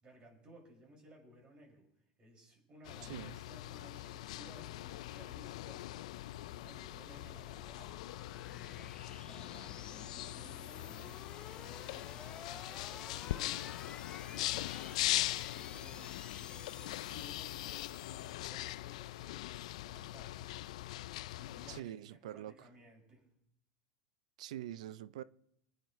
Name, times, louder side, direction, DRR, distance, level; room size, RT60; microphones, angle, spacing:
voice 1, 0.0-8.0 8.4-21.1 21.3-23.3, right 1 dB, 30° right, 5.8 m, -59 dB
sound 1, 2.8-21.8, left 16 dB, 80° left, 0.4 m, -41 dB
voice 2, 3.0-3.3 21.7-22.5 24.4-25.2, right 12 dB, 85° right, 0.5 m, -44 dB
sound 2, 5.3-18.8, left 6 dB, 25° left, 0.8 m, -52 dB
24.5 x 9.1 x 3.2 m
supercardioid pair, 125°, 4 cm